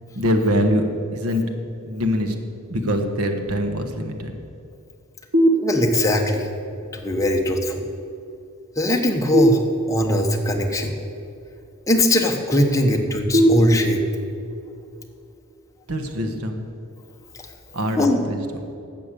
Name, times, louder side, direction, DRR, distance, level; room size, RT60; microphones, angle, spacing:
voice 1, 0.1-0.8 1.1-1.5 1.8-2.4 2.7-4.3 15.9-16.6 17.7-18.4, equal, 85° right, 6 dB, 1.4 m, -23 dB
sound 1, 5.3-6.3 9.3-10.3 13.3-14.3, right 1 dB, 65° right, 1.6 m, -20 dB
voice 2, 5.6-6.5 6.9-7.8 8.8-9.6 9.9-10.9 11.9-14.0 18.0-18.2, left 1 dB, 15° left, 2 dB, 1.2 m, -20 dB
12.0 x 7.6 x 8.3 m, 2.6 s
head